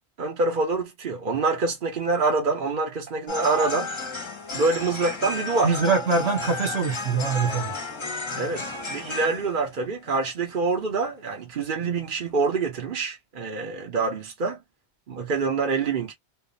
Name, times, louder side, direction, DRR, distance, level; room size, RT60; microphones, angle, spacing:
voice 1, 0.2-3.9 4.5-5.8 8.4-14.6 15.1-16.1, right 3 dB, 50° right, 0.9 m, -26 dB
sound 1, 3.3-9.8 10.1-10.2 10.5-10.9 11.3-11.4 11.7-11.8 12.1-12.2, left 2 dB, 30° left, 0.6 m, -33 dB
voice 2, 5.6-7.7, right 4 dB, 65° right, 1.5 m, -23 dB
3.6 x 2.1 x 2.4 m
omnidirectional pair, 1.1 m